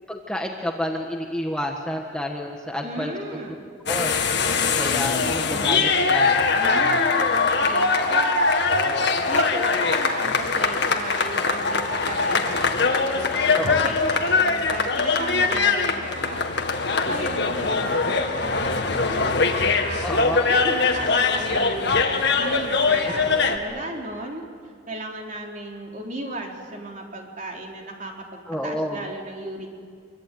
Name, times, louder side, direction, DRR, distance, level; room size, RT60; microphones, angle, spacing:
voice 1, 0.1-3.4 3.9-4.2 4.8-6.5 8.6-9.3 13.5-13.9 15.4-15.5 20.0-20.5 23.0-23.2 28.5-29.1, left 1 dB, 5° left, 1 dB, 1.4 m, -30 dB
voice 2, 2.8-3.7 6.5-8.3 9.2-16.5 16.8-20.1 20.5-24.4 24.9-29.7, right 1 dB, 40° right, 0 dB, 3.9 m, -35 dB
sound 1, 3.9-23.6, left 4 dB, 55° left, 2.0 m, -22 dB
25.5 x 23.5 x 9.4 m, 2.1 s
head